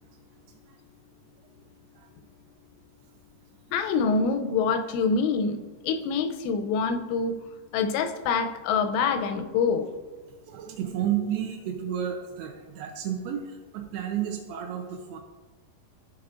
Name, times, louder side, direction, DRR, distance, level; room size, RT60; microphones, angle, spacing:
voice 1, 3.7-5.6 5.8-7.4 7.7-9.9, left 5 dB, 90° left, 7 dB, 2.8 m, -25 dB
voice 2, 10.5-15.2, right 9 dB, 80° right, 3 dB, 2.3 m, -32 dB
13.5 x 4.7 x 2.4 m, 1.3 s
omnidirectional pair, 4.9 m